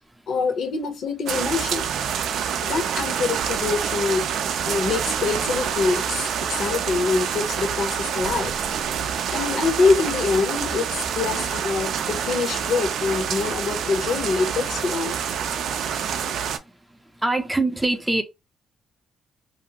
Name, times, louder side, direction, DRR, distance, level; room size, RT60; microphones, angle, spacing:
voice 1, 0.3-1.8 2.6-4.3 4.7-8.5 9.3-15.1, left 4 dB, 65° left, 0.8 m, -25 dB
sound 1, 1.3-16.6, right 8 dB, 75° right, 0.4 m, -27 dB
voice 2, 17.2-18.2, right 2 dB, 10° right, 0.5 m, -22 dB
2.6 x 2.4 x 2.8 m
cardioid pair, 90°, 0 cm